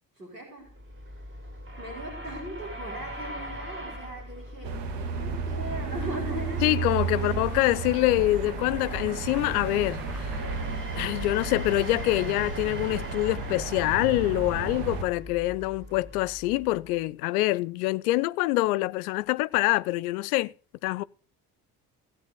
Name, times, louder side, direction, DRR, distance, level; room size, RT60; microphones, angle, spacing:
voice 1, 0.2-0.7 1.8-6.6 7.1-7.3, equal, 90° right, 5.3 m, -39 dB
sound 1, 0.7-17.0, equal, 25° right, 5.0 m, -41 dB
sound 2, 4.6-15.0, right 5 dB, 60° right, 2.0 m, -33 dB
voice 2, 6.6-10.4 10.9-20.5 20.8-21.0, left 18 dB, 65° left, 0.6 m, -25 dB
sound 3, 7.5-7.9 8.4-10.9, equal, ahead, 5.7 m, -48 dB
16.5 x 8.1 x 6.6 m
figure-of-eight pair, 50°, 47 cm